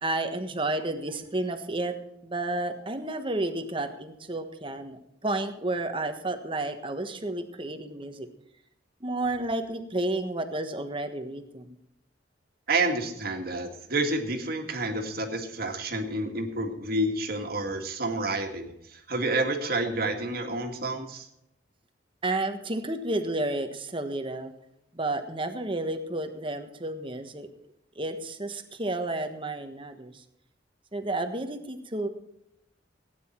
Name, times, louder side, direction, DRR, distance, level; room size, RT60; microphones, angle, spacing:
voice 1, 0.0-1.9 2.2-8.3 9.0-11.8 22.2-24.5 24.9-27.5 27.9-30.2 30.9-32.1, right 2 dB, 30° right, 7 dB, 1.3 m, -31 dB
voice 2, 12.7-21.3, right 2 dB, 55° right, 4 dB, 2.1 m, -29 dB
17.0 x 9.5 x 4.5 m, 0.80 s
head